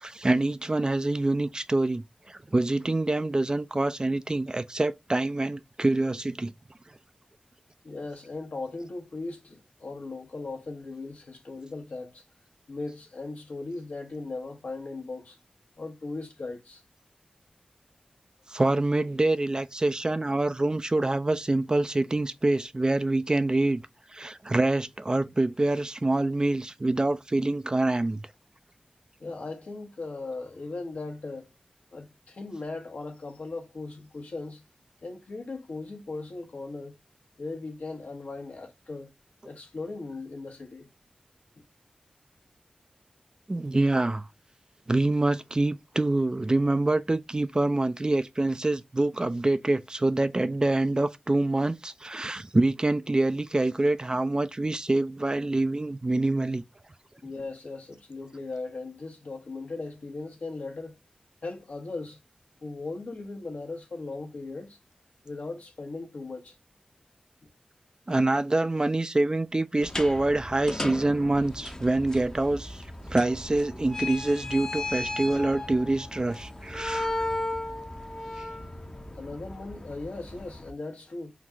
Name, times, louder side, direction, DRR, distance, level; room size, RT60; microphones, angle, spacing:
voice 1, 0.0-6.5 18.5-23.8 24.1-28.2 43.5-44.3 44.9-56.6 68.1-72.8 73.1-77.2 78.4-78.5, right 2 dB, 30° right, 0.3 m, -26 dB
voice 2, 7.8-12.2 12.7-15.4 15.8-16.8 29.2-31.5 31.9-34.6 35.0-37.0 37.4-39.1 39.4-40.9 57.2-61.0 61.4-62.2 62.6-64.8 65.2-66.5 79.1-81.3, left 3 dB, 80° left, 1.0 m, -38 dB
sound 1, 69.8-80.7, left 2 dB, 25° left, 0.6 m, -36 dB
3.9 x 2.4 x 2.9 m
cardioid pair, 45°, 3 cm